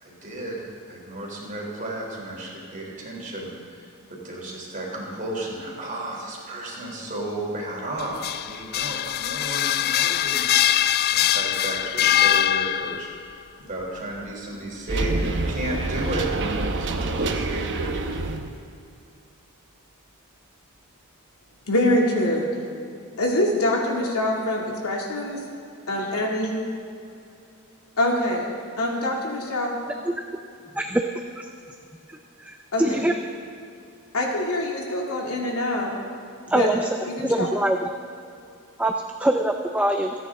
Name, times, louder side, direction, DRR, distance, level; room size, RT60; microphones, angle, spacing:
voice 1, 0.0-3.5 3.8-3.9 4.2-16.3 16.7-17.9, right 1 dB, 35° right, -3 dB, 3.6 m, -33 dB
sound 1, 8.0-13.2, left 11 dB, 45° left, 0.3 m, -22 dB
sound 2, 14.9-18.5, right 2 dB, 55° right, 0.9 m, -26 dB
voice 2, 21.7-22.4 23.2-25.4 25.9-26.6 28.0-28.5 28.8-29.8 32.7-33.1 34.1-35.9 36.5-36.7 37.0-37.5, left 1 dB, 75° left, -2 dB, 2.7 m, -24 dB
voice 3, 32.1-33.1 36.5-36.9 37.2-37.9 38.8-38.9 39.2-40.1, right 1 dB, 5° right, 4 dB, 0.5 m, -23 dB
28.0 x 9.8 x 3.7 m, 2.6 s
head